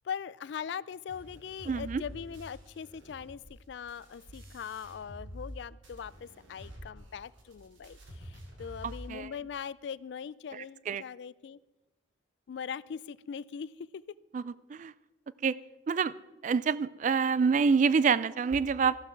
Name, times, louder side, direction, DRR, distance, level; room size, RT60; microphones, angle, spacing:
voice 1, 0.0-11.6 12.5-14.0, left 7 dB, 60° left, 21 dB, 0.3 m, -41 dB
sound 1, 1.1-5.6 5.8-9.1, equal, 80° right, 2.9 m, -48 dB
voice 2, 1.7-2.0 8.8-9.3 10.5-11.0 14.3-14.9 15.4-15.5 15.9-16.1 16.4-19.0, right 5 dB, 40° right, 19 dB, 0.3 m, -27 dB
14.0 x 12.0 x 4.5 m, 1.1 s
head